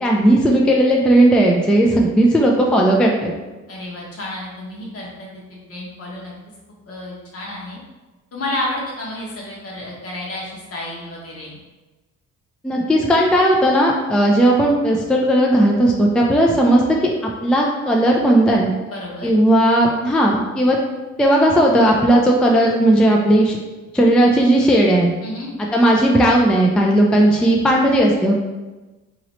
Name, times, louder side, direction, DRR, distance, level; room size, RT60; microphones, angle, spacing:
voice 1, 0.0-3.3 12.6-17.1 17.4-18.7 19.2-20.8 21.2-23.6 23.9-25.1 25.7-28.3, right 1 dB, 5° left, -1 dB, 0.3 m, -15 dB
voice 2, 3.7-6.3 6.9-7.8 8.3-11.6 18.8-19.3 25.2-25.5, left 1 dB, 50° left, -4 dB, 1.2 m, -31 dB
2.9 x 2.8 x 3.0 m, 1.2 s
cardioid pair, 90°, 30 cm